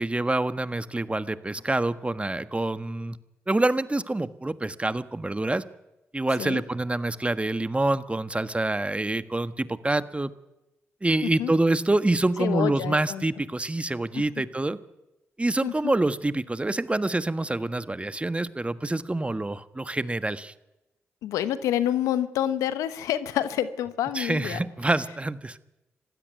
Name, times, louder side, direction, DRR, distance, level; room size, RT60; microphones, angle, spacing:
voice 1, 0.0-3.2 3.5-5.6 6.1-10.3 11.0-14.8 15.4-20.5 24.1-25.6, right 2 dB, 20° right, 13 dB, 1.4 m, -26 dB
voice 2, 11.2-11.5 12.4-13.2 14.1-14.2 15.6-15.9 21.2-24.6, left 11 dB, 85° left, 13 dB, 1.1 m, -28 dB
25.5 x 16.0 x 9.3 m, 0.97 s
supercardioid pair, 40°, 5 cm